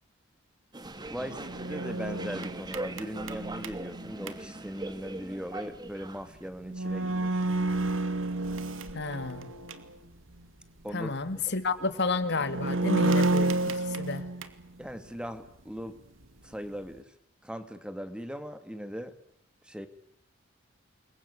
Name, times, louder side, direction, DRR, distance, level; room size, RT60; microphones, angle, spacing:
sound 1, 0.7-6.5, right 2 dB, 20° right, 2.1 m, -41 dB
voice 1, 1.1-7.5 10.8-11.4 14.8-16.0 16.4-17.1 17.4-19.1 19.6-19.9, equal, 5° right, 9 dB, 2.3 m, -39 dB
sound 2, 1.1-4.3 6.2-6.3 6.7-9.9 10.3-10.4 12.2-14.7, right 2 dB, 80° right, 2.5 m, -30 dB
voice 2, 8.9-9.5 10.9-14.3, left 3 dB, 60° left, 10 dB, 2.3 m, -31 dB
28.5 x 22.5 x 8.3 m, 0.72 s
head